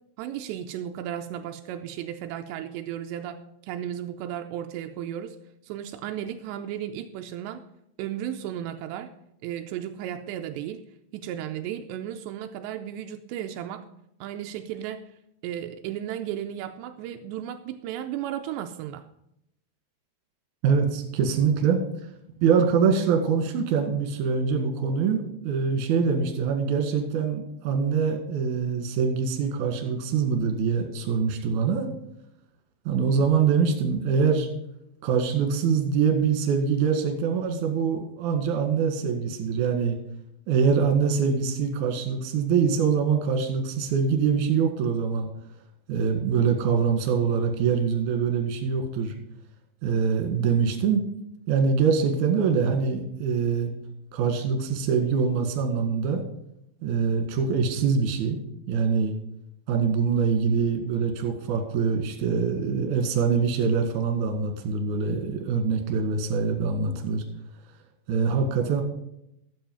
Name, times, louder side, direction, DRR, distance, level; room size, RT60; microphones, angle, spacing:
voice 1, 0.2-5.4 5.6-7.6 8.0-9.1 9.4-10.8 11.1-13.9 14.2-15.0 15.4-19.1, right 10 dB, 90° right, 6 dB, 2.5 m, -34 dB
voice 2, 20.6-21.8 22.4-31.9 32.9-34.5 35.0-40.0 40.5-45.3 45.9-49.1 49.8-51.0 51.5-53.7 54.1-56.2 56.8-58.4 58.7-59.1 59.7-67.2 68.1-68.8, right 6 dB, 55° right, 4 dB, 2.4 m, -24 dB
12.5 x 8.1 x 5.5 m, 0.79 s
omnidirectional pair, 5.6 m